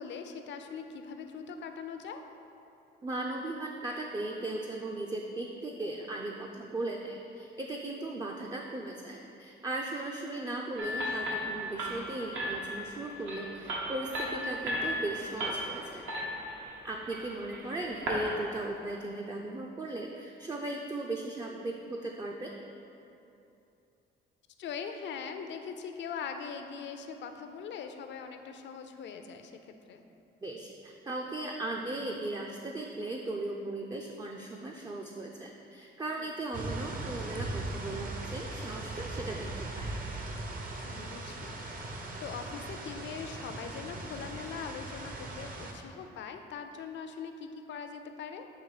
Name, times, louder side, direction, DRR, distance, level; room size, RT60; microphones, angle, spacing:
voice 1, 0.0-2.2 24.6-30.0 36.2-36.3 40.8-48.5, left 6 dB, 65° left, 7 dB, 0.5 m, -42 dB
voice 2, 3.0-16.1 16.8-22.5 30.4-39.9, right 2 dB, 20° right, 0 dB, 0.4 m, -37 dB
sound 1, 10.8-18.3, equal, 80° right, 1.2 m, -36 dB
sound 2, 36.5-45.7, right 2 dB, 45° right, 0.8 m, -39 dB
7.4 x 3.0 x 4.8 m, 2.8 s
cardioid pair, 90°, 20 cm